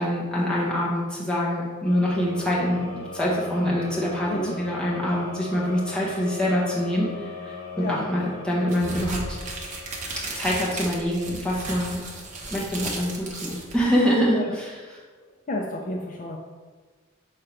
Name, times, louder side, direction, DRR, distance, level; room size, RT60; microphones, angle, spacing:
voice 1, 0.0-9.4 10.2-12.0 12.5-15.0, equal, 5° left, -7 dB, 1.3 m, -25 dB
sound 1, 1.8-10.8, left 2 dB, 75° left, 1.6 m, -39 dB
sound 2, 8.7-14.2, right 2 dB, 35° right, 1.0 m, -35 dB
voice 2, 15.2-16.4, left 1 dB, 40° left, -1 dB, 0.5 m, -31 dB
6.5 x 3.8 x 4.4 m, 1.4 s
head